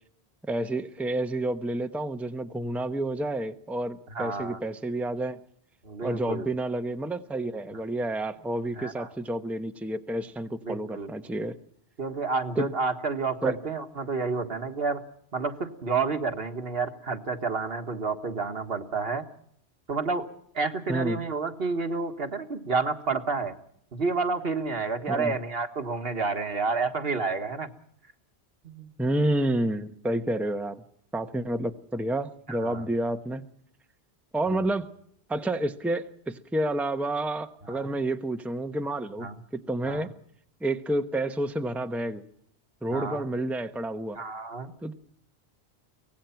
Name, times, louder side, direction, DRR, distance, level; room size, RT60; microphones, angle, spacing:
voice 1, 0.5-5.4 6.0-11.6 12.6-12.7 13.4-13.6 20.9-21.2 25.1-25.4 29.0-30.8 31.1-33.5 34.3-34.9 35.3-40.1 40.6-42.2 42.8-44.2 44.8-44.9, right 1 dB, ahead, 8 dB, 0.9 m, -29 dB
voice 2, 4.1-4.6 5.8-6.5 8.8-9.1 10.7-11.1 12.0-15.0 15.3-19.2 19.9-20.3 20.5-23.5 23.9-27.7 28.6-28.9 32.5-32.9 34.5-34.7 37.7-38.0 39.2-39.4 39.9-40.1 42.9-43.3 44.2-44.7, right 4 dB, 60° right, 7 dB, 1.8 m, -30 dB
24.0 x 18.5 x 5.8 m, 0.66 s
omnidirectional pair, 1.1 m